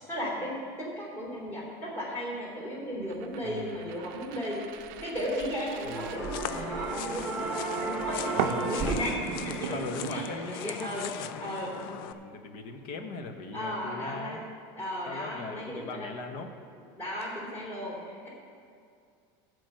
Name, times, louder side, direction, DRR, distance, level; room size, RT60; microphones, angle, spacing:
voice 1, 0.1-0.5 0.8-4.6 5.0-9.8 10.1-11.1 11.4-11.7 13.5-14.4 14.8-16.1 17.0-18.3, equal, 20° left, -3 dB, 3.2 m, -35 dB
sound 1, 3.1-6.9 8.4-10.3, right 10 dB, 55° right, 0.6 m, -37 dB
voice 2, 3.4-3.9 5.8-6.3 8.4-8.7 9.7-14.4 15.1-16.5, left 3 dB, 50° left, 6 dB, 1.1 m, -40 dB
sound 2, 4.7-5.5 5.9-9.0, right 4 dB, 10° right, 1.1 m, -34 dB
sound 3, 6.1-12.1, left 10 dB, 70° left, 0.5 m, -40 dB
13.5 x 4.8 x 7.8 m, 2.4 s
supercardioid pair, 165°, 12 cm